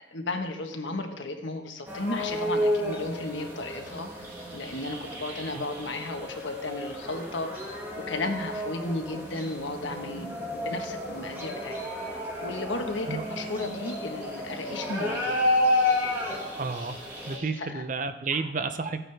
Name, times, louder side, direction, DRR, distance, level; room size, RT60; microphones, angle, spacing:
voice 1, 0.1-4.1 4.5-15.4 17.6-17.8 18.3-18.5, left 2 dB, 75° left, 5 dB, 1.2 m, -34 dB
sound 1, 1.9-17.4, left 1 dB, 10° right, 1.8 m, -31 dB
sound 2, 2.7-8.2 8.6-11.9 12.2-17.6, right 2 dB, 65° right, 4.4 m, -49 dB
voice 2, 16.6-17.0 17.2-19.0, right 4 dB, 40° right, 9 dB, 0.6 m, -31 dB
14.5 x 9.0 x 3.4 m, 0.95 s
head